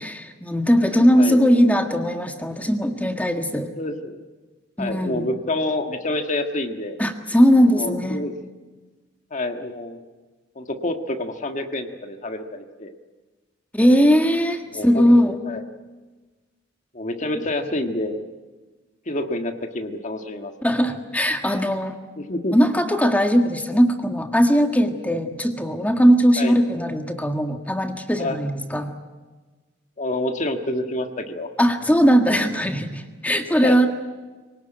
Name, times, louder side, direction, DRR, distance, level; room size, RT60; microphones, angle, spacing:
voice 1, 0.0-3.7 4.8-5.3 7.0-8.3 13.7-15.4 17.3-17.5 20.6-22.0 22.5-29.0 31.6-33.9, equal, 10° left, 5 dB, 1.7 m, -19 dB
voice 2, 3.8-4.2 4.8-7.0 7.8-8.3 9.3-10.0 10.5-12.9 14.7-15.1 15.4-15.6 16.9-18.3 19.1-20.5 22.2-22.5 26.4-26.6 28.2-28.4 30.0-31.5 33.6-33.9, left 1 dB, 40° left, 6 dB, 1.7 m, -27 dB
24.5 x 18.5 x 9.2 m, 1.3 s
head